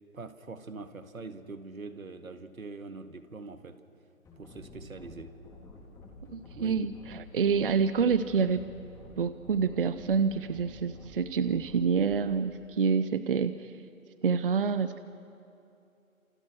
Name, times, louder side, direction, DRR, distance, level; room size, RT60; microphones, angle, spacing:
voice 1, 0.1-3.8 4.4-5.4 6.5-6.9, right 3 dB, 75° right, 9 dB, 2.0 m, -43 dB
sound 1, 4.2-12.2, left 1 dB, 5° left, 3.2 m, -50 dB
voice 2, 6.3-8.7 9.2-13.7 14.2-15.0, right 6 dB, 40° right, 13 dB, 0.8 m, -27 dB
28.0 x 28.0 x 6.5 m, 2.7 s
figure-of-eight pair, 150°, 42 cm